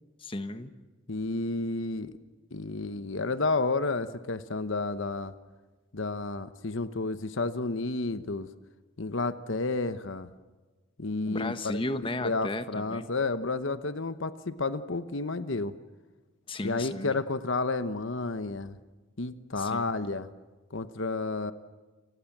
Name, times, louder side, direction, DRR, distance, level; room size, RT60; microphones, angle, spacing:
voice 1, 0.2-0.7 11.3-13.1 16.5-17.1 19.6-19.9, left 2 dB, 25° left, 10 dB, 1.3 m, -34 dB
voice 2, 1.1-2.1 2.5-5.3 5.9-8.5 9.0-10.3 11.0-11.8 12.2-15.7 16.6-18.8 19.2-20.3 20.7-21.5, left 3 dB, 65° left, 12 dB, 1.0 m, -31 dB
30.0 x 25.0 x 7.4 m, 1.3 s
head